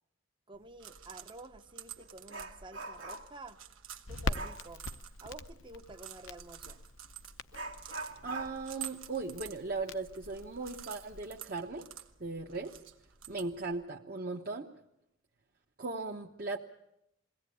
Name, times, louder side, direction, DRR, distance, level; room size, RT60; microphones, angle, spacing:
voice 1, 0.5-3.6 4.1-4.8 5.2-6.8, right 2 dB, 25° right, 7 dB, 0.8 m, -50 dB
sound 1, 0.5-13.8, right 11 dB, 85° right, 1.1 m, -50 dB
Dog, 1.0-1.1 1.5-3.5 4.3-4.7 6.6-6.8 7.5-10.8 11.1-11.2 11.8-11.9 12.5-12.9 13.3-13.5, right 2 dB, 60° right, 1.9 m, -44 dB
Crackle, 4.1-11.4, left 3 dB, 75° left, 0.8 m, -43 dB
voice 2, 8.2-11.8 12.2-12.8 13.3-14.7 15.8-16.6, right 3 dB, 45° right, 0 dB, 1.1 m, -38 dB
22.0 x 17.0 x 8.5 m, 0.84 s
head